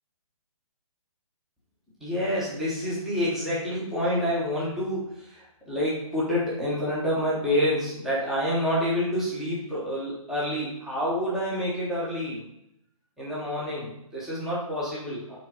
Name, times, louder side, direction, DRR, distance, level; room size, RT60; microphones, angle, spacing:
voice 1, 2.0-12.4 13.2-15.4, equal, ahead, -8 dB, 1.1 m, -28 dB
9.4 x 3.8 x 4.9 m, 0.79 s
hypercardioid pair, 175°, 19 cm